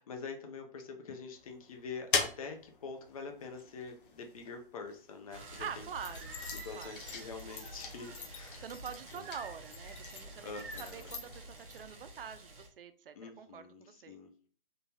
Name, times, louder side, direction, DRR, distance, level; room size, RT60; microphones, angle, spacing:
voice 1, 0.0-5.9 6.6-8.6 9.1-9.3 10.4-11.1 13.1-14.3, left 4 dB, 40° left, 4 dB, 0.6 m, -45 dB
sound 1, 1.4-5.0 5.6-11.8, left 5 dB, 60° left, 1.0 m, -41 dB
sound 2, 5.3-12.7, right 1 dB, 35° right, 0.9 m, -49 dB
voice 2, 5.6-6.4 6.7-7.1 8.6-14.2, right 7 dB, 70° right, 10 dB, 0.5 m, -45 dB
Singing, 6.1-8.2 9.2-10.1 10.5-11.0, right 1 dB, 20° right, 0.6 m, -50 dB
3.7 x 2.6 x 2.7 m, 0.43 s
hypercardioid pair, 155°, 29 cm